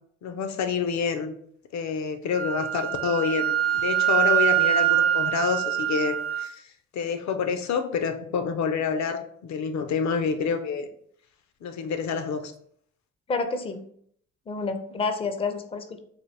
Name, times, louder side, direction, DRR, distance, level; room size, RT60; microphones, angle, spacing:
voice 1, 0.2-1.3 1.7-10.9 11.6-12.5, left 6 dB, 65° left, 8 dB, 0.6 m, -28 dB
Wind instrument woodwind instrument, 2.3-6.5, right 11 dB, 45° right, 0.4 m, -24 dB
voice 2, 13.3-13.8 14.5-16.0, left 4 dB, 20° left, 8 dB, 0.4 m, -29 dB
4.1 x 2.5 x 3.2 m, 0.64 s
cardioid pair, 100°, 31 cm